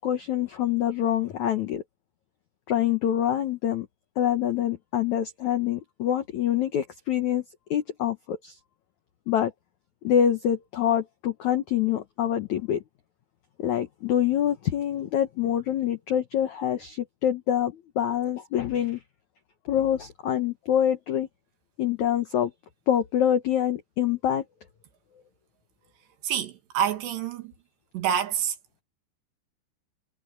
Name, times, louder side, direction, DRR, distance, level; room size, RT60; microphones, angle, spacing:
voice 1, 0.0-1.8 2.7-3.9 4.2-7.4 7.7-8.6 9.3-9.5 10.0-12.8 13.6-19.0 19.6-21.3 21.8-22.5 22.9-24.4, left 10 dB, 85° left, 1.6 m, -25 dB
voice 2, 26.2-27.5 27.9-28.6, right 9 dB, 75° right, 4.1 m, -27 dB
omnidirectional pair, 5.2 m